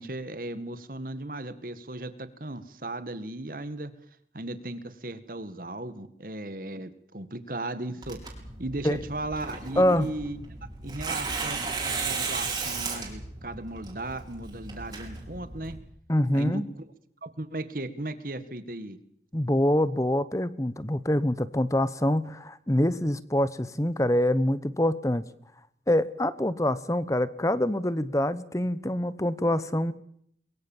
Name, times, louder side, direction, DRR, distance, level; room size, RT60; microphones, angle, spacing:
voice 1, 0.0-3.9 4.3-8.2 8.6-10.6 10.8-15.8 16.3-16.6 17.2-19.0, right 2 dB, 50° right, 12 dB, 1.8 m, -36 dB
Tearing, 8.0-15.8, right 4 dB, 20° right, 5.1 m, -35 dB
voice 2, 9.8-10.1 16.1-16.6 19.3-25.3 25.9-29.9, left 1 dB, 20° left, 16 dB, 0.9 m, -25 dB
23.0 x 22.5 x 7.3 m, 0.68 s
head